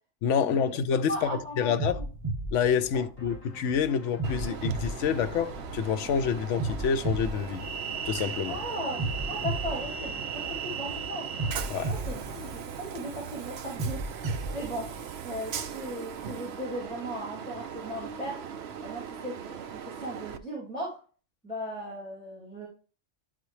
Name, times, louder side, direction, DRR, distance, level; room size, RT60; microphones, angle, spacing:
voice 1, 0.2-2.0 2.5-7.7 8.0-8.6 11.7-11.9, left 7 dB, 80° left, 0.9 m, -27 dB
sound 1, 0.9-1.2 1.8-3.6 4.2-6.0 6.6-8.4 9.0-10.8 11.4-13.2 13.8-15.6, right 2 dB, 25° right, 1.2 m, -34 dB
voice 2, 1.1-1.7 2.9-3.0 8.5-14.9 15.2-18.4 18.8-21.0 21.4-22.7, equal, 5° left, 2.8 m, -37 dB
sound 2, 3.2-12.5, left 1 dB, 30° left, 3.2 m, -47 dB
Train, 4.2-20.4, right 7 dB, 65° right, 0.8 m, -38 dB
11.5 x 4.0 x 3.2 m
omnidirectional pair, 1.2 m